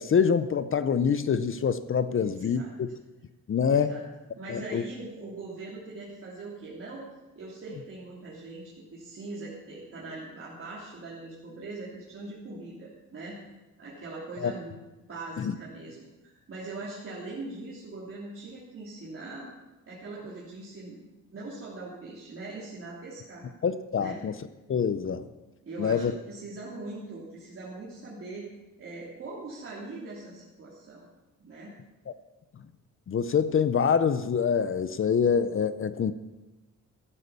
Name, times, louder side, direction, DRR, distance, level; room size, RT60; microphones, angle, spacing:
voice 1, 0.0-2.9 3.5-3.9 4.5-4.8 14.4-14.5 15.4-15.5 23.6-24.3 24.7-25.2 25.8-26.1 33.1-36.1, left 6 dB, 40° left, 13 dB, 0.6 m, -25 dB
voice 2, 2.1-2.7 3.6-4.0 4.3-7.1 7.3-13.4 13.8-14.7 15.1-19.5 19.9-21.0 21.3-23.4 24.0-24.2 25.6-28.5 28.8-31.0 31.4-31.7, right 2 dB, 40° right, -7 dB, 3.2 m, -41 dB
14.5 x 9.7 x 6.9 m, 1.1 s
wide cardioid pair, 155°, 32 cm